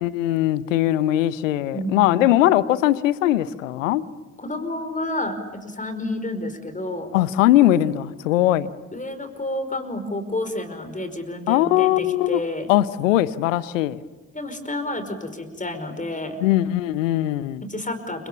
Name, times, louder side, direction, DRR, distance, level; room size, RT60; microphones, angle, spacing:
voice 1, 0.0-4.0 7.1-8.7 11.5-12.4 12.7-14.0 16.4-17.6, left 14 dB, 75° left, 0.9 m, -20 dB
voice 2, 1.7-2.4 4.4-7.1 8.9-12.7 14.3-16.4 17.6-18.3, left 1 dB, 20° left, 5.3 m, -30 dB
30.0 x 26.0 x 7.3 m
figure-of-eight pair, 45°, 39 cm